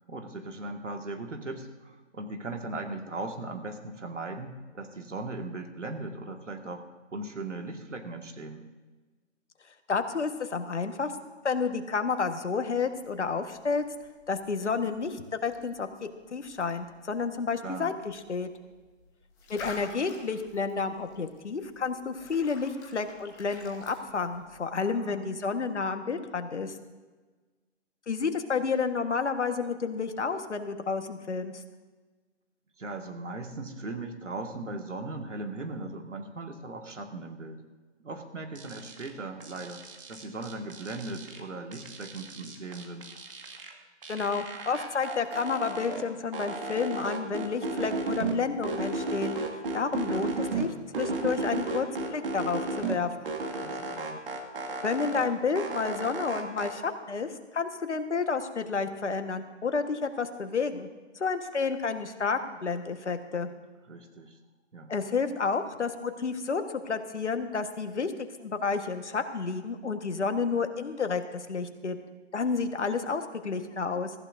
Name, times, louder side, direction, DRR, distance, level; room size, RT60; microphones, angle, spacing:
voice 1, 0.0-6.9 7.1-8.7 17.6-17.9 24.7-25.3 32.8-37.6 38.0-39.8 40.1-43.1 50.0-50.3 53.6-54.3 63.9-64.4 64.7-64.9, right 2 dB, 75° right, 4 dB, 1.9 m, -38 dB
voice 2, 9.9-11.1 11.4-13.8 14.3-15.9 16.3-18.5 19.5-26.7 28.1-31.6 44.1-50.7 50.9-53.3 54.8-60.9 61.1-63.5 64.9-68.1 68.4-72.0 72.3-74.1, left 5 dB, 65° left, 7 dB, 1.5 m, -30 dB
sound 1, 12.9-24.6, left 4 dB, 10° left, 1.1 m, -50 dB
sound 2, 38.6-39.1 39.4-41.4 41.7-43.7 44.0-46.0 46.3-48.3 48.6-50.7 50.9-53.0 53.2-55.3 55.6-56.7, right 3 dB, 45° right, 2.0 m, -34 dB
22.5 x 14.5 x 2.7 m, 1.3 s
figure-of-eight pair, 150°, 37 cm